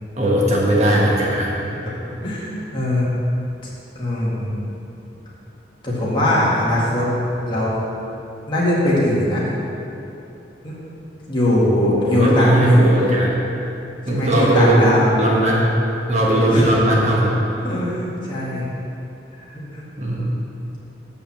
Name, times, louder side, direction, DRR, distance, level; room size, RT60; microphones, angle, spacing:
voice 1, 0.2-1.5 12.1-13.4 14.1-14.9 15.2-15.8 16.1-17.3 20.0-20.3, right 1 dB, 40° right, -4 dB, 1.3 m, -18 dB
voice 2, 2.2-3.1 4.0-4.7 5.8-7.1 7.5-7.8 8.5-9.5 10.6-10.8 11.3-12.8 14.1-15.1 16.5-16.7 17.6-18.7 19.7-19.8, left 1 dB, 25° left, -7 dB, 1.9 m, -20 dB
7.4 x 5.5 x 7.3 m, 2.9 s
head